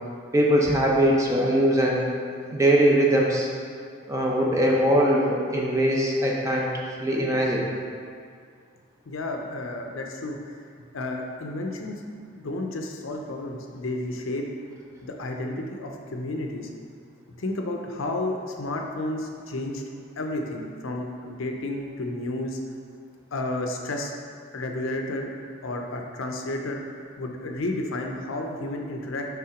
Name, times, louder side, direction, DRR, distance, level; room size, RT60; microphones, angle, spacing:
voice 1, 0.3-2.1 2.5-3.5 4.1-6.7 7.0-7.6, right 1 dB, 15° right, -3 dB, 0.6 m, -21 dB
voice 2, 9.1-10.7 10.9-14.5 15.0-16.7 17.3-19.8 20.2-22.6 23.3-24.1 24.5-25.3 25.6-26.8 27.2-29.3, left 2 dB, 80° left, 2 dB, 0.6 m, -31 dB
5.7 x 3.7 x 5.0 m, 2.1 s
head